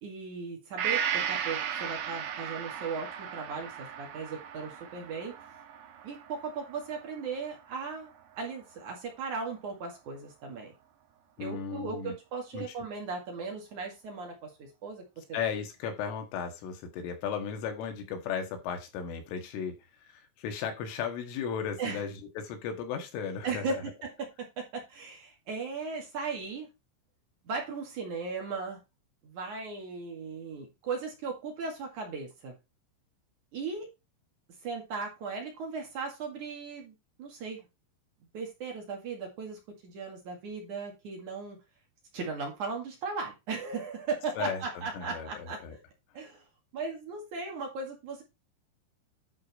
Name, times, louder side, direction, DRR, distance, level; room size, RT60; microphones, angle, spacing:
voice 1, 0.0-5.3 6.0-10.7 11.4-15.4 21.8-22.0 23.4-26.7 27.4-28.8 29.2-32.6 33.5-33.9 34.6-37.6 38.3-41.6 42.1-45.6 46.1-46.4 46.7-48.2, right 4 dB, 50° right, 1 dB, 2.8 m, -37 dB
Gong, 0.8-8.4 8.8-8.9, right 8 dB, 70° right, 3.2 m, -36 dB
voice 2, 11.4-12.1 12.5-12.6 15.3-19.7 20.1-23.8 44.4-45.8, left 7 dB, 90° left, 5 dB, 4.3 m, -35 dB
11.0 x 5.2 x 4.2 m, 0.24 s
omnidirectional pair, 5.5 m